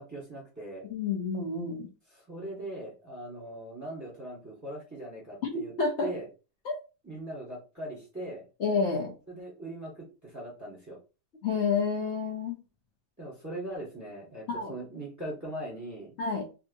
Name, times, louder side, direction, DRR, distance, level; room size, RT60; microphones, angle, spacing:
voice 1, 0.0-0.8 2.1-5.7 6.0-6.3 7.0-8.4 9.3-9.9 10.2-11.0 13.2-16.1, right 1 dB, 15° right, -4 dB, 1.2 m, -40 dB
voice 2, 0.9-1.9 5.4-6.1 6.6-6.8 8.6-9.1 11.4-12.6 14.5-14.7 16.2-16.5, left 4 dB, 60° left, 0 dB, 1.0 m, -29 dB
3.5 x 2.8 x 2.6 m, 0.30 s
omnidirectional pair, 1.5 m